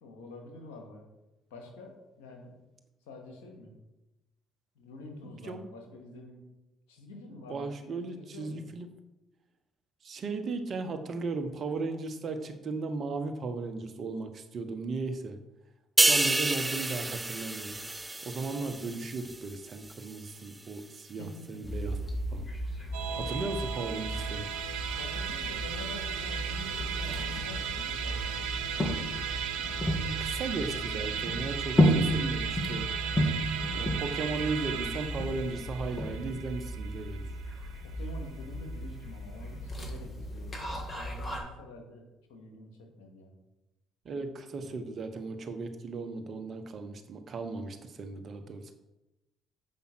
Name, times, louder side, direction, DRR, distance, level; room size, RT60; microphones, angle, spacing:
voice 1, 0.0-1.1 1.5-2.5 3.1-3.7 4.8-6.4 6.9-8.7 21.2-21.5 25.0-28.8 37.8-43.3 44.6-44.8, left 2 dB, 80° left, 2 dB, 2.0 m, -47 dB
voice 2, 5.2-5.7 7.3-8.9 10.0-15.4 16.0-17.8 18.2-22.0 22.3-22.4 23.1-24.5 29.6-32.9 33.7-37.3 44.0-48.7, right 3 dB, 50° right, 7 dB, 1.2 m, -36 dB
sound 1, 16.0-19.5 19.9-20.1, right 2 dB, 15° right, 0.4 m, -28 dB
sound 2, 21.6-41.4, equal, 30° left, 2.3 m, -33 dB
Musical instrument, 22.9-38.4, right 8 dB, 80° right, 0.8 m, -36 dB
7.7 x 5.4 x 6.2 m, 0.99 s
hypercardioid pair, 55°, 0 cm